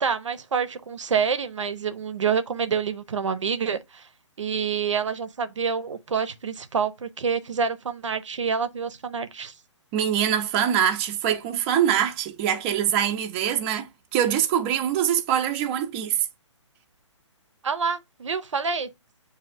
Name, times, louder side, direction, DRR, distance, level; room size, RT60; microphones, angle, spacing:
voice 1, 0.0-4.1 4.4-9.5 17.6-18.9, right 6 dB, 75° right, 0.7 m, -27 dB
voice 2, 9.9-16.3, right 9 dB, 25° right, 0.6 m, -24 dB
7.8 x 2.7 x 2.5 m
figure-of-eight pair, 140°, 16 cm